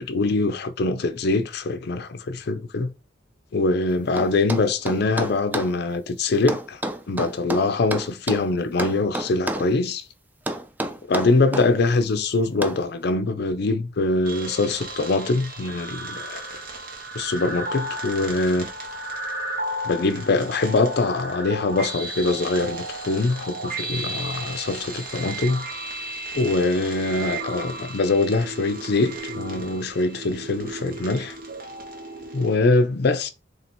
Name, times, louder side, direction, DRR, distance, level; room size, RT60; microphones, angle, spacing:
voice 1, 0.0-2.9 3.5-6.8 7.1-10.0 11.1-16.4 17.1-18.7 19.8-25.7 26.3-31.4 32.3-33.3, left 3 dB, 60° left, 0.5 m, -23 dB
sound 1, 4.2-5.7 6.5-8.5 8.8-9.7 10.5-11.7 12.6-12.8, right 1 dB, 10° right, 0.3 m, -29 dB
sound 2, 14.2-32.5, right 2 dB, 50° right, 1.1 m, -34 dB
3.4 x 2.8 x 4.3 m
head